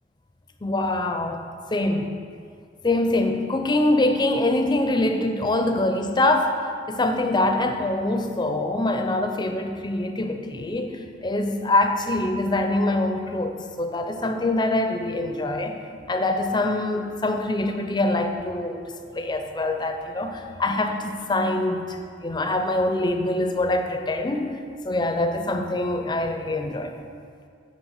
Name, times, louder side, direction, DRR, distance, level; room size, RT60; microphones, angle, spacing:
voice 1, 0.6-1.4 1.7-2.1 2.8-6.5 6.9-15.8 16.1-24.6 24.8-26.9, left 2 dB, 25° left, 5 dB, 0.6 m, -24 dB
10.0 x 3.4 x 6.5 m, 2.2 s
head